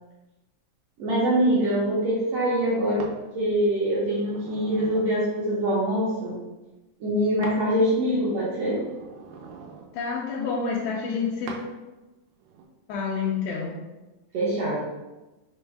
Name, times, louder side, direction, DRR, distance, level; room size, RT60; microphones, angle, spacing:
voice 1, 1.0-3.0 3.3-6.4 7.0-8.8 14.3-14.8, right 1 dB, 75° right, -8 dB, 1.6 m, -24 dB
sound 1, 3.0-3.2 3.8-5.2 7.4-7.6 8.1-9.9 11.5-11.7 12.4-12.6, right 5 dB, 90° right, 2.1 m, -43 dB
voice 2, 9.9-11.6 12.9-13.8, left 5 dB, 80° left, -4 dB, 1.8 m, -28 dB
5.2 x 2.1 x 3.3 m, 1.1 s
omnidirectional pair, 3.5 m